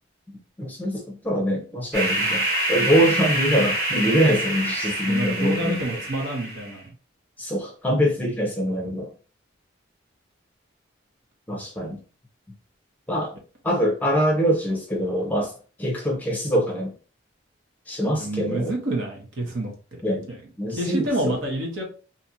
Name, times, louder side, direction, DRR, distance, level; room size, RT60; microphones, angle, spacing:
voice 1, 0.6-6.0 7.4-9.1 11.5-12.0 13.1-13.3 13.6-15.5 15.8-16.9 17.9-18.7 20.0-20.3 20.6-21.3, equal, 10° left, 0.6 m, -24 dB
sound 1, 1.9-6.7, right 1 dB, 50° right, 1.2 m, -26 dB
voice 2, 5.1-6.9 18.1-20.4 20.7-21.8, right 1 dB, 80° right, 1.1 m, -28 dB
2.7 x 2.4 x 2.8 m
head